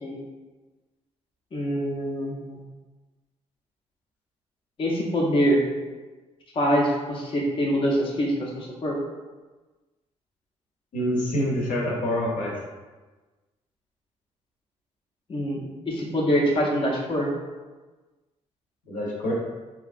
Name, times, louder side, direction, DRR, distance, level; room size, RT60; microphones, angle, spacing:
voice 1, 1.5-2.6 4.8-5.6 6.5-9.0 15.3-17.3, equal, 40° left, -2 dB, 0.5 m, -24 dB
voice 2, 10.9-12.6 18.9-19.3, equal, 70° left, -3 dB, 0.7 m, -26 dB
2.8 x 2.4 x 2.4 m, 1.2 s
supercardioid pair, 60°, 14 cm